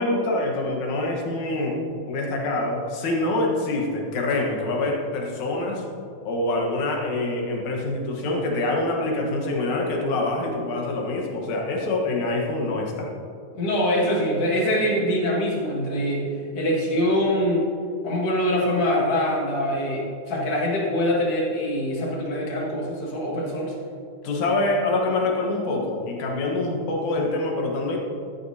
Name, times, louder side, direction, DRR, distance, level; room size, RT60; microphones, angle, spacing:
voice 1, 0.0-1.8 2.1-5.8 6.2-13.1 24.2-28.0, left 2 dB, 75° left, 0 dB, 2.8 m, -25 dB
voice 2, 13.5-17.6 18.0-23.7, equal, 50° left, -3 dB, 2.7 m, -24 dB
13.5 x 10.0 x 2.8 m, 2.6 s
omnidirectional pair, 3.5 m